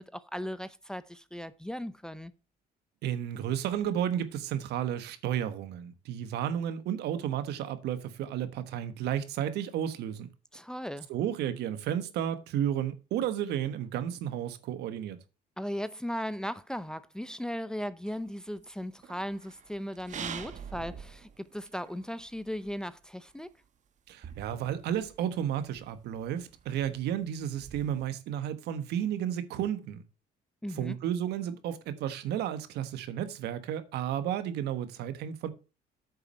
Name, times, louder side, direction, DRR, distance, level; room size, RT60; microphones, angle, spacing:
voice 1, 0.0-2.3 10.5-11.1 15.6-23.5 30.6-31.0, equal, 5° left, 0.6 m, -37 dB
voice 2, 3.0-10.3 11.1-15.2 24.1-30.0 30.7-35.5, right 10 dB, 80° right, 1.3 m, -32 dB
sound 1, 18.1-22.8 23.3-23.4 23.6-23.7 24.2-28.0, right 7 dB, 45° right, 1.1 m, -46 dB
8.6 x 6.9 x 4.2 m
cardioid pair, 110°, 17 cm